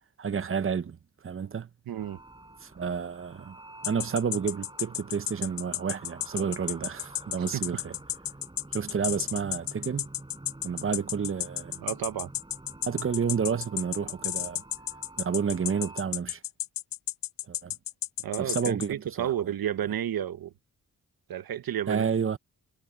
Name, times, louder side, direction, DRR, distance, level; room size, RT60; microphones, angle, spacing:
voice 1, 0.2-1.0 1.2-1.7 2.6-3.6 3.8-8.0 8.7-10.1 10.6-11.8 12.9-14.6 15.2-16.4 17.5-17.7 18.4-19.3 21.9-22.4, right 6 dB, 40° right, 0.8 m, -30 dB
voice 2, 1.9-2.2 7.4-7.6 11.8-12.3 18.2-20.5 21.3-22.1, right 10 dB, 85° right, 1.2 m, -31 dB
sound 1, 2.0-16.0, right 2 dB, 15° right, 7.7 m, -49 dB
sound 2, 3.8-18.9, left 13 dB, 70° left, 0.5 m, -32 dB
wide cardioid pair, 130°, 35 cm